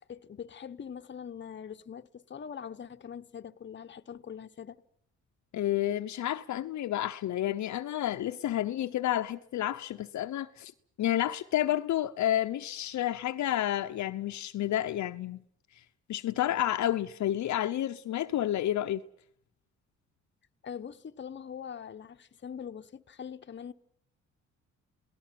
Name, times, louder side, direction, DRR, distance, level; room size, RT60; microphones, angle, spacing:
voice 1, 0.1-4.8 20.6-23.7, left 7 dB, 40° left, 1.1 m, -43 dB
voice 2, 5.5-10.7 11.0-15.4 16.1-19.0, left 12 dB, 70° left, 0.9 m, -30 dB
28.5 x 18.5 x 7.6 m
cardioid pair, 90°, 30 cm